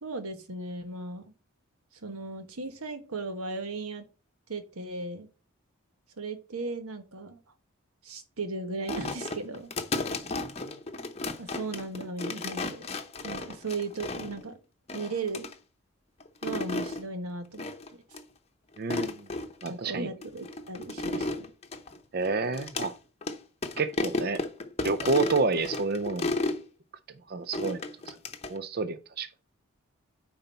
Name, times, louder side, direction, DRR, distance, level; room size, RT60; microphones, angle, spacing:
voice 1, 0.0-1.3 2.0-4.0 4.5-5.3 6.2-7.4 8.0-9.7 11.4-12.8 13.2-14.6 14.9-15.5 16.4-17.7 19.7-21.5, right 3 dB, 85° right, 1.3 m, -36 dB
sound 1, 8.9-14.5 14.9-15.5 16.2-17.0 17.6-17.9 18.1-18.2 18.8-19.7 20.2-22.9 23.2-23.4 23.6-26.6 27.5-28.6, left 2 dB, 30° left, 0.8 m, -33 dB
voice 2, 18.8-19.3 19.6-20.1 22.1-22.9 23.8-24.4 24.8-26.4 27.3-28.1 28.5-29.3, right 3 dB, 45° right, 0.5 m, -29 dB
9.5 x 4.0 x 5.6 m
head